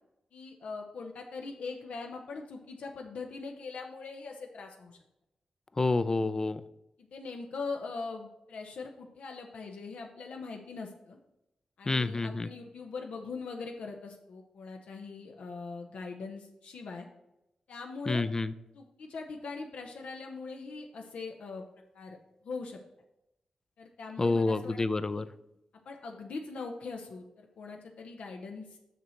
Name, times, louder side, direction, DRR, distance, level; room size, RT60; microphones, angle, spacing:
voice 1, 0.3-5.0 7.0-11.2 11.8-17.1 17.7-18.2 18.7-21.6 21.9-22.2 22.4-22.8 23.8-24.8 25.1-25.2 25.8-28.8, left 4 dB, 85° left, 2 dB, 0.8 m, -41 dB
voice 2, 5.8-6.6 11.9-12.5 18.1-18.5 24.2-25.2, left 3 dB, 25° left, 14 dB, 0.4 m, -28 dB
6.7 x 6.3 x 4.3 m, 0.87 s
wide cardioid pair, 105°, 2 cm